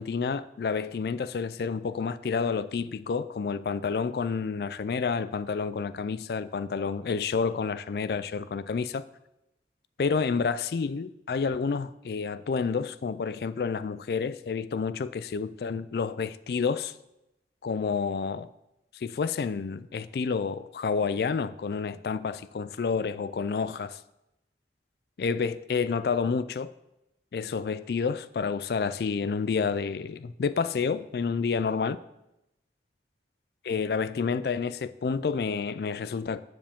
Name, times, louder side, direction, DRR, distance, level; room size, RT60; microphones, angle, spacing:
voice 1, 0.0-9.0 10.0-16.9 17.6-18.5 18.9-24.0 25.2-26.7 27.3-32.0 33.6-36.4, left 5 dB, 60° left, 0.3 m, -29 dB
14.0 x 4.9 x 3.6 m
head